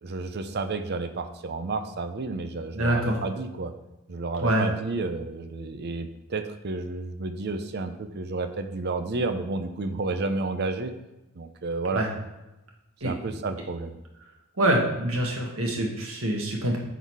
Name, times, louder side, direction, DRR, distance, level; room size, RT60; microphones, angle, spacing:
voice 1, 0.0-3.7 4.1-10.9 11.4-12.0 13.0-14.0, right 3 dB, 50° right, 8 dB, 0.6 m, -31 dB
voice 2, 2.7-3.2 4.4-4.7 11.9-12.1 13.0-13.1 14.6-16.8, right 1 dB, 75° right, 0 dB, 1.6 m, -25 dB
9.6 x 4.1 x 4.7 m, 0.98 s
head